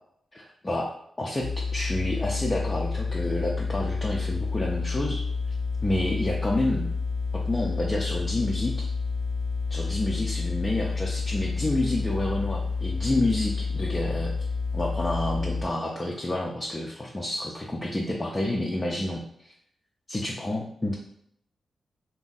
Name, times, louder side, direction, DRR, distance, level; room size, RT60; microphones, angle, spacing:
voice 1, 0.3-0.9 1.2-5.2 5.8-6.9 7.3-8.9 9.7-14.3 14.7-19.5 20.1-20.9, left 1 dB, 25° left, -3 dB, 0.5 m, -29 dB
sound 1, 1.4-15.6, left 4 dB, 85° left, 0.5 m, -29 dB
2.6 x 2.2 x 3.9 m, 0.71 s
cardioid pair, 60°, 0 cm